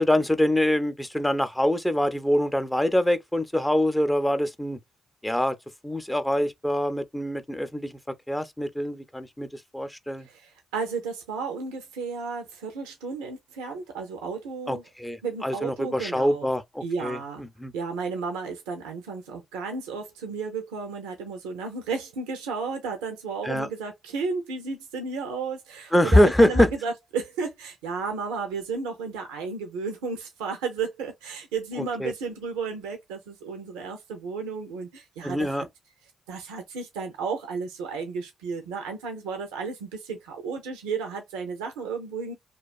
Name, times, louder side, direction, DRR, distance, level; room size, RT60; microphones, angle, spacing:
voice 1, 0.0-4.8 5.2-5.6 5.8-7.9 8.3-10.3 14.7-17.7 23.4-23.7 25.9-26.7 31.8-32.1 35.2-35.7, left 1 dB, 10° left, 0.5 m, -24 dB
voice 2, 10.2-14.8 15.2-16.5 16.8-17.4 17.7-35.7 36.3-42.3, right 5 dB, 85° right, 0.4 m, -33 dB
2.4 x 2.2 x 2.3 m
hypercardioid pair, 45°, 0 cm